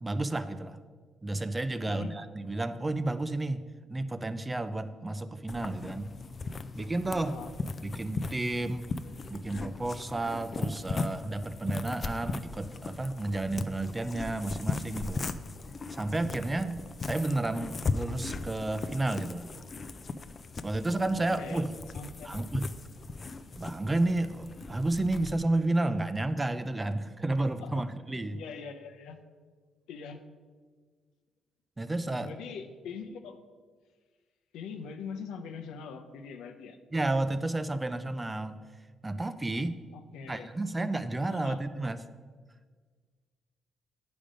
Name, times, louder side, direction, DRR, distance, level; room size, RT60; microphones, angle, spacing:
voice 1, 0.0-0.8 1.2-3.6 3.9-6.1 6.7-7.3 7.8-8.9 9.3-15.2 15.9-19.5 20.6-21.7 22.2-22.7 23.6-28.4 31.8-32.3 36.9-38.6 39.0-39.7 40.3-42.0, right 2 dB, 20° right, 12 dB, 0.5 m, -31 dB
sound 1, 5.5-25.4, left 3 dB, 35° left, 0.4 m, -38 dB
voice 2, 21.9-22.4 27.6-27.9 28.3-29.2 29.9-30.2 32.2-33.4 34.5-36.8 39.9-40.5 41.3-41.6, left 6 dB, 90° left, 6 dB, 0.6 m, -42 dB
8.9 x 5.2 x 5.0 m, 1.5 s
cardioid pair, 90°, 0 cm